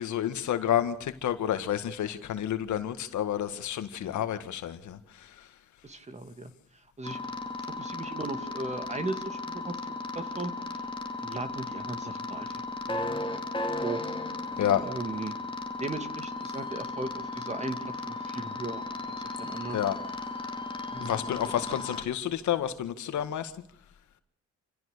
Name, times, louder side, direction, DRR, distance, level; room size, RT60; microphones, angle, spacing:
voice 1, 0.0-5.0 14.6-14.8 19.7-20.0 21.0-23.5, left 10 dB, 70° left, 1.9 m, -29 dB
voice 2, 5.8-6.5 7.0-7.2 7.6-10.9 11.2-12.5 12.9-13.4 13.8-14.0 14.8-15.4 15.8-17.8 18.1-18.8 19.2-19.8 20.9-21.4, right 2 dB, 20° right, 2.6 m, -37 dB
sound 1, 7.0-22.0, left 2 dB, 15° left, 2.3 m, -36 dB
28.0 x 16.5 x 6.8 m
cardioid pair, 90°, 30 cm